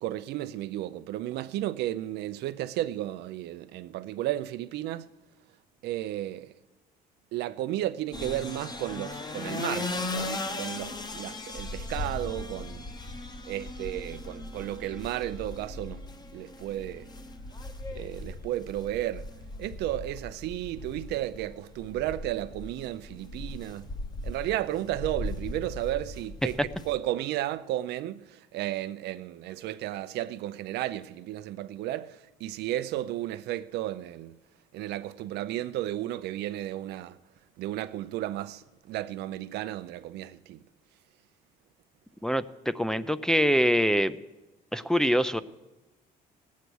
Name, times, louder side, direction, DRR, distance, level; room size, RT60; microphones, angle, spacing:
voice 1, 0.0-5.1 5.8-6.6 7.3-12.9 13.4-16.0 16.3-17.1 17.9-19.3 19.6-23.9 24.2-34.4 34.7-37.2 37.6-40.6, right 14 dB, 80° right, 0.6 m, -33 dB
sound 1, 8.1-27.0, left 2 dB, 25° left, 1.0 m, -38 dB
voice 2, 42.2-44.2 44.7-45.4, equal, 5° left, 0.4 m, -24 dB
18.0 x 8.3 x 6.2 m
cardioid pair, 110°, 17 cm